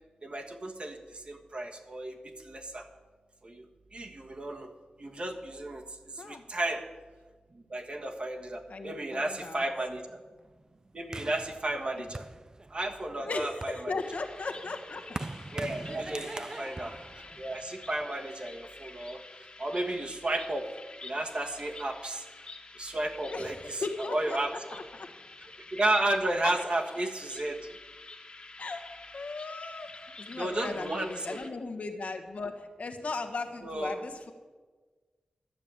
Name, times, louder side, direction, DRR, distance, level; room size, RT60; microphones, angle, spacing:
voice 1, 0.2-2.2 2.4-2.8 3.4-3.6 3.9-4.7 5.0-5.8 6.1-6.8 7.5-10.2 10.9-12.3 12.7-13.9 15.5-19.2 19.6-20.6 21.0-22.2 22.8-24.8 25.7-27.6 30.4-31.4 33.6-34.0, right 1 dB, 45° right, 3 dB, 1.5 m, -33 dB
voice 2, 8.7-9.6 12.0-12.1 13.2-15.2 16.1-16.4 23.3-23.5 23.8-24.4 24.7-25.1 26.4-26.5 28.6-28.9 29.1-34.3, left 3 dB, 65° left, 5 dB, 1.4 m, -37 dB
sound 1, 11.1-12.9 13.4-18.0, right 2 dB, 25° right, 0.4 m, -42 dB
sound 2, 14.0-31.5, left 3 dB, 40° left, 1.6 m, -49 dB
12.5 x 6.9 x 8.8 m, 1.4 s
wide cardioid pair, 75°, 3 cm